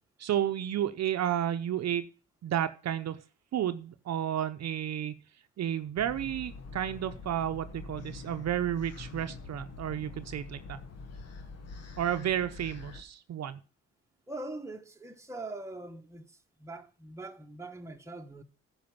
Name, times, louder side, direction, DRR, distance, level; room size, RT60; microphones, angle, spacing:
voice 1, 0.2-2.0 2.4-3.2 3.5-5.2 5.6-10.8 12.0-13.6, right 10 dB, 60° right, 0.8 m, -32 dB
sound 1, 6.0-13.0, left 4 dB, 55° left, 1.7 m, -45 dB
voice 2, 14.3-18.4, right 2 dB, 10° right, 1.2 m, -42 dB
10.5 x 5.0 x 7.1 m
cardioid pair, 90°, 30 cm